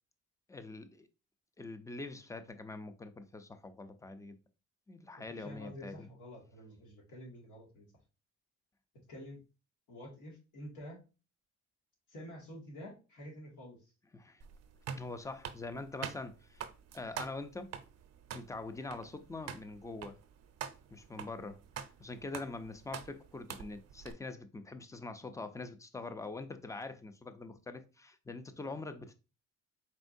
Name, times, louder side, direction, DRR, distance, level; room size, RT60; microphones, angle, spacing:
voice 1, 0.5-1.1 1.6-4.4 4.9-6.1 14.1-14.4 15.0-16.6 16.9-17.7 18.3-20.2 20.9-21.6 22.0-29.1, left 3 dB, 10° left, 0.5 m, -44 dB
voice 2, 5.3-7.9 9.1-9.4 9.9-11.0 12.1-13.9 28.6-28.8, equal, 80° left, 2.0 m, -49 dB
sound 1, 14.4-24.1, right 8 dB, 60° right, 0.6 m, -46 dB
4.4 x 3.6 x 2.6 m
cardioid pair, 90°, 30 cm